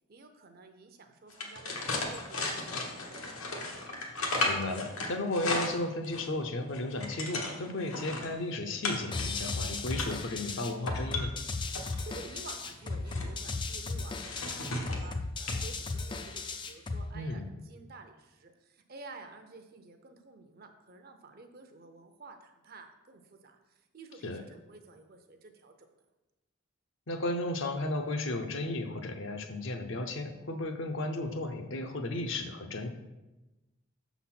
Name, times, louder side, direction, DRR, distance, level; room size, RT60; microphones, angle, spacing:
voice 1, 0.1-3.9 12.0-23.6 23.9-25.7, right 3 dB, 45° right, 6 dB, 0.6 m, -51 dB
sound 1, 1.3-6.3 6.7-8.3 8.8-9.3 9.6-10.2 10.7-12.0 12.7-13.3 14.2-15.1 15.5-15.6 15.9-16.1, left 2 dB, 85° left, 1.2 m, -35 dB
voice 2, 4.4-11.3 17.1-17.5 24.2-24.4 27.1-32.9, left 2 dB, 65° left, 5 dB, 0.7 m, -34 dB
sound 2, 9.1-17.1, left 3 dB, 20° left, 0.3 m, -36 dB
6.4 x 4.1 x 5.9 m, 1.0 s
head